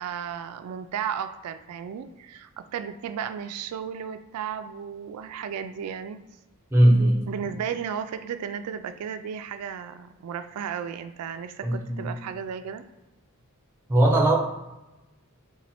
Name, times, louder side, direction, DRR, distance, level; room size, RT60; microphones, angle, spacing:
voice 1, 0.0-6.2 7.3-12.8, right 8 dB, 90° right, 10 dB, 0.3 m, -34 dB
voice 2, 6.7-7.3 11.6-12.1 13.9-14.4, right 1 dB, 10° right, 0 dB, 0.6 m, -19 dB
4.1 x 2.2 x 4.2 m, 1.0 s
head